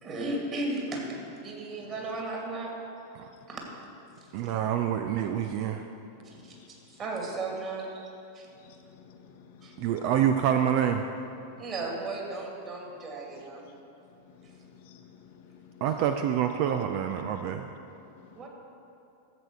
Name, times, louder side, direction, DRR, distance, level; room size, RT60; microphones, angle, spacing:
voice 1, 0.0-2.7 3.5-3.6 6.2-8.1 8.3-8.5 9.6-9.7 11.6-13.6 18.4-18.5, right 2 dB, 30° right, -1 dB, 2.4 m, -35 dB
voice 2, 4.3-5.8 9.8-11.0 15.8-17.7, right 9 dB, 45° right, 7 dB, 0.4 m, -27 dB
voice 3, 8.6-9.8 14.8-15.1 15.3-15.8 18.2-18.3, left 7 dB, 50° left, 4 dB, 0.9 m, -53 dB
13.5 x 7.8 x 4.8 m, 2.7 s
figure-of-eight pair, 90°, 0 cm